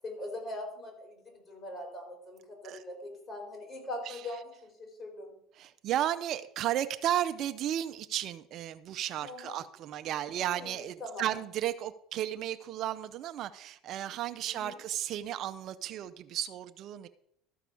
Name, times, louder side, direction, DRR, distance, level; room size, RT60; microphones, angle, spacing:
voice 1, 0.0-4.5 4.8-5.3 9.2-9.6 10.3-11.3 14.4-14.8, left 1 dB, 35° left, 1 dB, 4.7 m, -42 dB
voice 2, 5.6-17.1, right 12 dB, 50° right, 11 dB, 0.5 m, -34 dB
13.0 x 4.8 x 6.9 m, 0.72 s
supercardioid pair, 105°, 0 cm